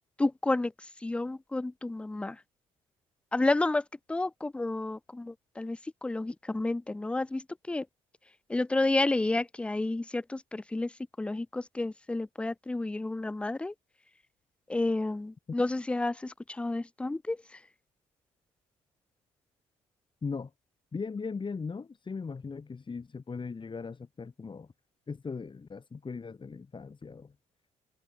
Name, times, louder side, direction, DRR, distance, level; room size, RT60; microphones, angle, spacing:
voice 1, 0.2-0.7 1.0-2.4 3.3-7.9 8.5-10.9 11.2-13.7 14.7-17.4, left 2 dB, 5° left, 0.3 m, -30 dB
voice 2, 20.9-24.7 25.1-27.3, left 5 dB, 35° left, 3.6 m, -38 dB
supercardioid pair, 65°, 15 cm